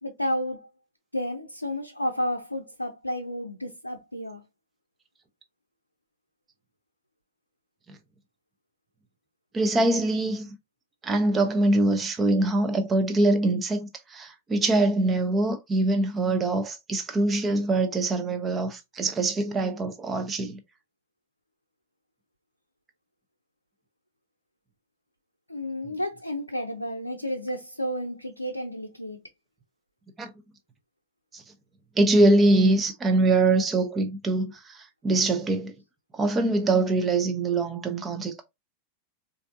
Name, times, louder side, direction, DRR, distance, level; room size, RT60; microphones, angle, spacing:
voice 1, 0.0-0.7 1.1-4.4 25.5-29.2, equal, 85° left, 0.5 m, -31 dB
voice 2, 9.5-10.5 11.0-20.6 30.2-30.3 31.3-31.4 32.0-35.7 36.1-38.4, right 2 dB, 20° right, 0.8 m, -23 dB
4.3 x 2.6 x 2.5 m
figure-of-eight pair, 90°, 0 cm